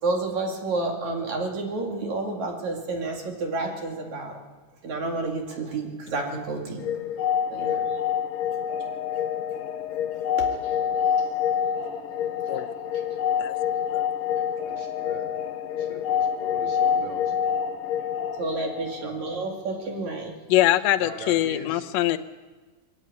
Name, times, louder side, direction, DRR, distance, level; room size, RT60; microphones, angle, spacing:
voice 1, 0.0-4.4 4.8-6.8 7.5-7.8 10.6-10.7 18.4-20.3, right 3 dB, 60° right, 2 dB, 3.5 m, -30 dB
sound 1, 6.8-19.6, left 8 dB, 85° left, 2.6 m, -27 dB
voice 2, 7.5-7.9 14.6-15.3 15.6-17.3 19.0-19.2 21.0-21.9, right 1 dB, 40° right, 1 dB, 3.5 m, -40 dB
voice 3, 20.5-22.2, left 14 dB, 70° left, 8 dB, 1.8 m, -23 dB
21.0 x 14.5 x 9.4 m, 1.3 s
omnidirectional pair, 3.7 m